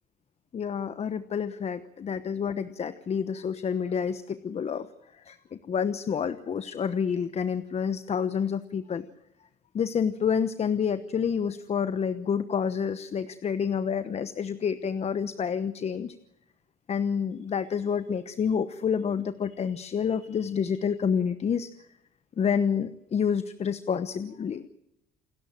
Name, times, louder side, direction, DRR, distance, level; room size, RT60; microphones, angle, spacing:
voice 1, 0.5-4.9 5.1-9.1 9.7-16.1 16.9-21.7 22.4-24.7, left 7 dB, 40° left, 12 dB, 1.1 m, -28 dB
28.5 x 13.0 x 9.0 m, 0.86 s
cardioid pair, 110°, 17 cm